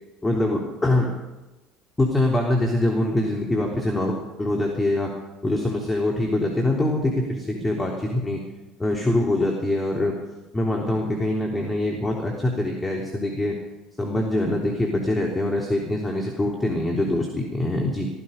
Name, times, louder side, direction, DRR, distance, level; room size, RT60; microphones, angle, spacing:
voice 1, 0.2-1.1 2.0-5.1 5.4-8.4 8.8-10.1 10.5-13.6 14.0-18.1, left 1 dB, 15° left, -1 dB, 3.5 m, -24 dB
15.5 x 15.0 x 5.3 m, 1.1 s
hypercardioid pair, 65°, 0 cm